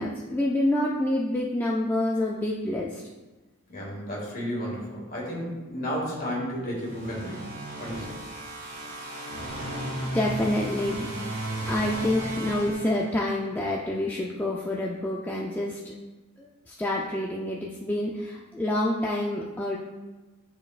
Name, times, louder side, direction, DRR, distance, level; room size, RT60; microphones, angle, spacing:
voice 1, 0.0-3.0 10.0-11.1 11.7-15.9 16.4-19.8, left 1 dB, 10° left, -4 dB, 0.4 m, -27 dB
voice 2, 3.7-7.5 7.8-8.2, equal, 45° left, -4 dB, 2.0 m, -32 dB
sound 1, 6.8-13.5, right 1 dB, 50° right, 2.0 m, -34 dB
10.5 x 4.2 x 2.4 m, 1.2 s
head